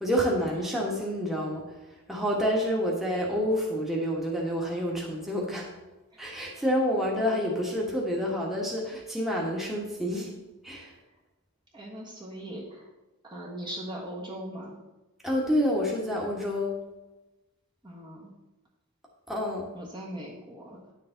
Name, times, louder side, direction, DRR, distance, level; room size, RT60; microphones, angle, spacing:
voice 1, 0.0-1.6 2.1-5.7 6.2-10.3 10.6-10.9 15.2-16.7 19.3-19.7, equal, ahead, -3 dB, 1.5 m, -28 dB
voice 2, 11.7-12.9 13.2-14.8 17.8-18.3 19.7-20.9, equal, 20° right, -3 dB, 1.4 m, -40 dB
10.5 x 6.8 x 4.0 m, 1.1 s
head